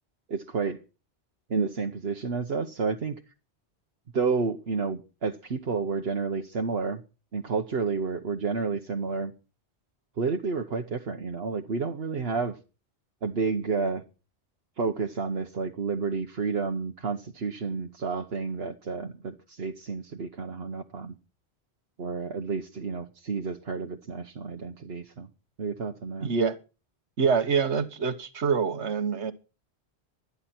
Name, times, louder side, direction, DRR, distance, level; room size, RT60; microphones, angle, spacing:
voice 1, 0.3-0.8 1.5-3.2 4.1-7.0 7.3-9.3 10.2-12.6 13.2-14.0 14.8-21.2 22.0-25.3 25.6-26.3, right 4 dB, 65° right, 1.3 m, -30 dB
voice 2, 26.2-26.6 27.2-29.3, right 5 dB, 90° right, 1.6 m, -25 dB
24.5 x 9.8 x 4.4 m
omnidirectional pair, 1.1 m